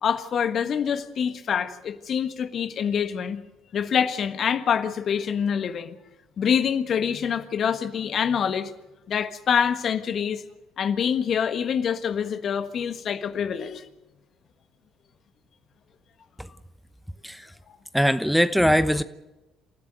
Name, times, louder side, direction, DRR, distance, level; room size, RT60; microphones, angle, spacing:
voice 1, 0.0-3.4 3.7-6.0 6.4-8.7 9.1-10.4 10.8-13.9, left 7 dB, 50° left, 10 dB, 1.4 m, -25 dB
voice 2, 17.9-19.0, equal, ahead, 13 dB, 0.9 m, -21 dB
28.0 x 14.5 x 6.7 m, 1.0 s
hypercardioid pair, 55°, 0 cm